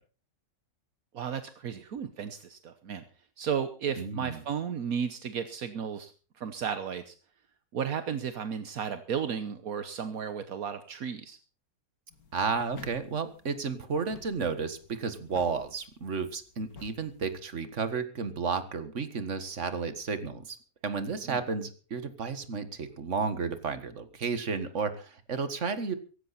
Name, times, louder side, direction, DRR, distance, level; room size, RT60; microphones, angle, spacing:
voice 1, 1.1-3.0 3.4-7.1 7.7-11.4 21.2-21.4, right 7 dB, 75° right, 10 dB, 1.5 m, -34 dB
voice 2, 4.0-4.4 12.3-20.6 20.8-25.9, right 5 dB, 55° right, 11 dB, 2.0 m, -32 dB
sound 1, 12.1-17.5, left 4 dB, 85° left, 2.8 m, -53 dB
17.0 x 15.0 x 4.2 m, 0.37 s
omnidirectional pair, 1.5 m